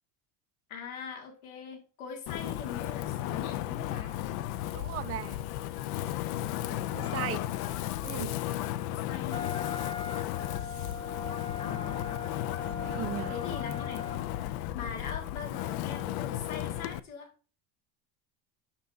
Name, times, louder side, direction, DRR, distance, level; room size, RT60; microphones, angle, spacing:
voice 1, 0.7-4.1 6.6-7.4 8.7-9.5 10.5-11.0 11.6-12.1 13.3-14.1 14.7-17.3, left 6 dB, 90° left, 1.9 m, -42 dB
Wind, 2.3-17.0, left 14 dB, 60° left, 0.5 m, -34 dB
voice 2, 4.7-5.4 6.9-7.4 8.0-8.3 12.8-13.4, right 12 dB, 35° right, 0.5 m, -37 dB
Wind instrument woodwind instrument, 9.3-14.6, left 4 dB, 15° left, 0.5 m, -40 dB
6.6 x 5.9 x 2.6 m
supercardioid pair, 90°, 42 cm